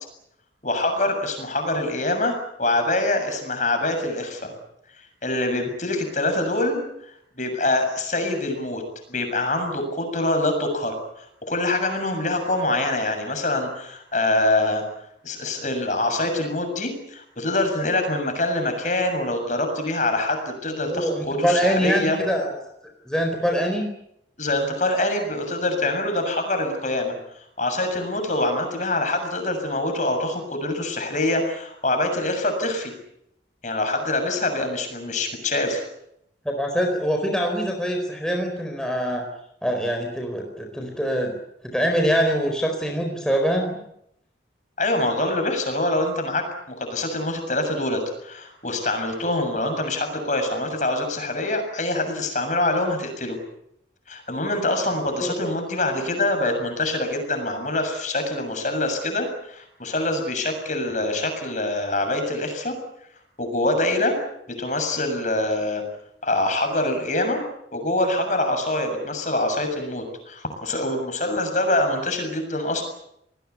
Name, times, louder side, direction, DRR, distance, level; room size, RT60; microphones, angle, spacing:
voice 1, 0.6-4.5 5.2-6.8 7.4-8.8 9.1-14.8 15.2-22.2 24.4-27.2 27.6-32.9 33.6-35.8 44.8-53.4 54.1-62.8 63.4-64.2 64.5-65.8 66.2-67.4 67.7-72.8, left 2 dB, 40° left, 6 dB, 7.0 m, -25 dB
voice 2, 20.8-22.5 23.1-23.9 36.4-39.2 39.6-41.3 41.6-43.8 55.2-55.5, equal, 5° left, 2 dB, 4.4 m, -24 dB
29.5 x 20.0 x 8.2 m, 0.76 s
head